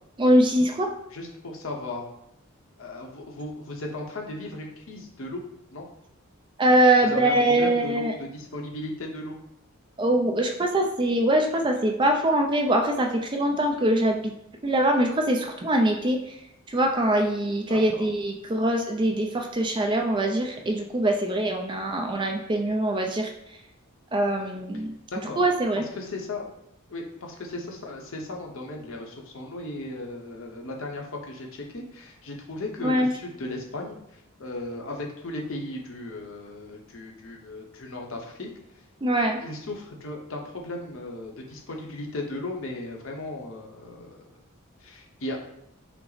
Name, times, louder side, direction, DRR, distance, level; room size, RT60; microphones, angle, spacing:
voice 1, 0.2-0.9 6.6-8.1 10.0-14.3 14.6-16.4 16.7-23.3 24.1-24.9 25.4-25.8 32.8-33.1 39.0-39.4, right 1 dB, 20° right, 2 dB, 0.4 m, -23 dB
voice 2, 1.1-2.1 2.8-5.4 5.7-5.9 7.0-9.4 17.7-18.1 25.1-25.4 25.7-26.5 26.9-38.5 39.4-44.2 44.8-45.4, left 2 dB, 60° left, 1 dB, 0.8 m, -36 dB
5.8 x 2.0 x 3.9 m, 0.78 s
head